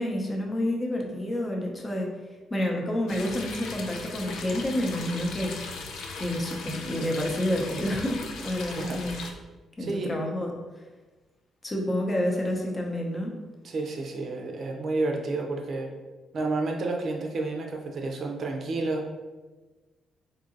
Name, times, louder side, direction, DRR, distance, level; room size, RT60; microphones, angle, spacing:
voice 1, 0.0-2.1 2.5-5.5 6.2-9.2 9.8-10.5 11.6-13.4, left 1 dB, 20° left, 0 dB, 0.7 m, -29 dB
sound 1, 3.1-9.3, left 3 dB, 80° left, 0.4 m, -38 dB
voice 2, 8.7-9.0 9.8-10.2 13.6-15.9 16.3-19.1, right 3 dB, 55° right, 2 dB, 0.6 m, -30 dB
3.8 x 2.8 x 2.6 m, 1.2 s
cardioid pair, 90°, 0 cm